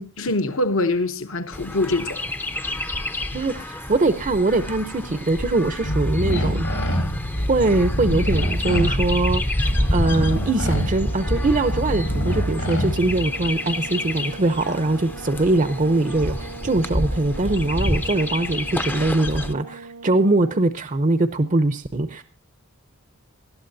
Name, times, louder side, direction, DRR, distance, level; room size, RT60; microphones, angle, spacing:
voice 1, 0.2-2.2 3.3-3.4, left 2 dB, 65° left, 0.9 m, -24 dB
Chirp tweet, 1.5-19.5, left 1 dB, 10° left, 0.5 m, -29 dB
voice 2, 3.3-6.7 7.5-9.4 9.9-22.2, right 2 dB, 35° right, 0.6 m, -22 dB
sound 1, 5.8-13.5, equal, 85° left, 3.9 m, -26 dB
sound 2, 9.6-20.7, right 4 dB, 85° right, 1.9 m, -40 dB
20.0 x 12.0 x 2.6 m
head